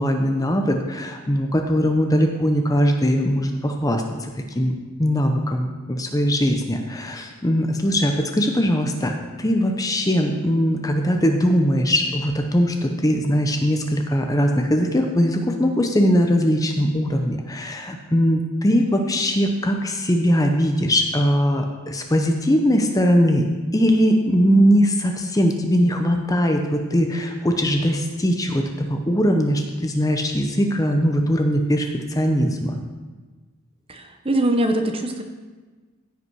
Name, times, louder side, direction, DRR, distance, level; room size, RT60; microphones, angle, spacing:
voice 1, 0.0-4.7 5.0-9.1 9.4-23.5 23.7-32.8, equal, 15° left, 4 dB, 0.7 m, -20 dB
voice 2, 33.9-35.2, right 1 dB, 25° right, 5 dB, 0.8 m, -22 dB
15.5 x 5.4 x 4.7 m, 1.3 s
head